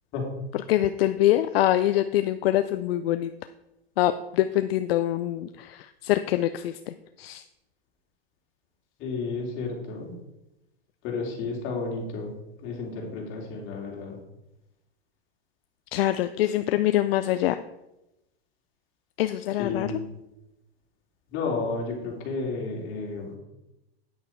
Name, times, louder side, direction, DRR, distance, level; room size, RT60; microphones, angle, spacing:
voice 1, 0.7-3.3 4.0-7.4 15.9-17.6 19.2-19.9, left 13 dB, 70° left, 11 dB, 0.5 m, -24 dB
voice 2, 9.0-10.1 11.0-12.3 12.6-14.2 19.6-20.0 21.3-23.3, left 4 dB, 40° left, -1 dB, 3.1 m, -32 dB
9.1 x 7.7 x 4.5 m, 0.92 s
supercardioid pair, 135°, 31 cm